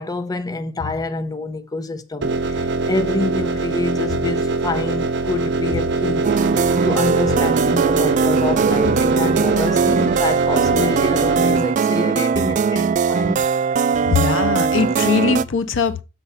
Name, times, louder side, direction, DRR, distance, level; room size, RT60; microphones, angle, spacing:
voice 1, 0.0-6.3 6.8-13.5, left 3 dB, 20° left, 0.5 m, -26 dB
sound 1, 2.2-11.6, right 3 dB, 60° right, 0.8 m, -22 dB
sound 2, 6.2-15.5, right 6 dB, 40° right, 0.3 m, -20 dB
voice 2, 14.0-16.0, left 5 dB, 70° left, 0.6 m, -20 dB
6.8 x 4.2 x 5.5 m
head